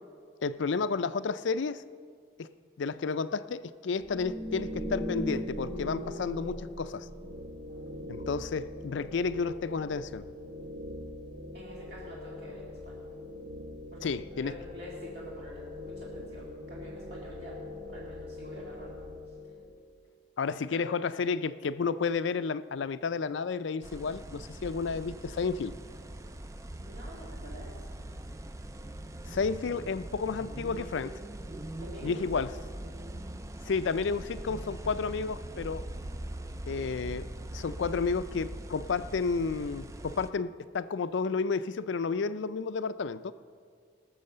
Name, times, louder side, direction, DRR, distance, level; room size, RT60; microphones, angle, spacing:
voice 1, 0.4-1.8 2.4-2.5 2.8-7.1 8.1-10.3 14.0-14.5 20.4-25.7 29.3-31.1 32.0-32.5 33.6-35.8 36.7-37.3 37.5-43.3, left 5 dB, 75° left, 14 dB, 0.4 m, -31 dB
sound 1, 4.0-19.8, left 1 dB, 75° right, 2.1 m, -41 dB
voice 2, 7.6-8.1 11.5-13.2 13.9-14.1 14.4-17.6 17.9-19.0 20.7-20.8 26.8-27.7 31.8-32.7, equal, 55° right, -5 dB, 2.3 m, -47 dB
sound 2, 23.8-40.3, right 1 dB, 15° right, 0.3 m, -42 dB
19.0 x 6.9 x 6.6 m, 2.1 s
head